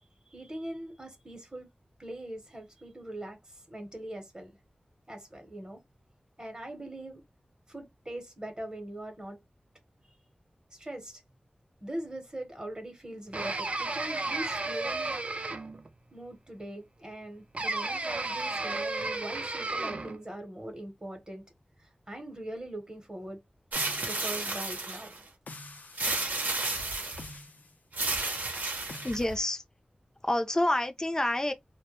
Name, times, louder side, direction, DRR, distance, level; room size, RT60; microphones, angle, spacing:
voice 1, 0.3-1.7 2.0-4.6 5.1-5.8 6.4-7.2 7.7-9.4 10.7-11.2 11.8-15.1 16.1-21.4 21.8-23.4 24.0-25.1, right 1 dB, 30° right, 0.8 m, -41 dB
sound 1, 13.3-15.9 17.5-20.2, right 2 dB, 45° right, 0.4 m, -33 dB
sound 2, 23.7-24.5 25.5-26.2 27.2-27.7 28.9-29.2, left 2 dB, 85° left, 0.5 m, -46 dB
sound 3, 23.7-25.2 26.0-27.3 27.9-29.4, right 2 dB, 80° right, 0.7 m, -32 dB
voice 2, 29.0-29.6 30.2-31.5, left 1 dB, 20° left, 0.4 m, -28 dB
2.1 x 2.1 x 2.9 m
wide cardioid pair, 65°, 3 cm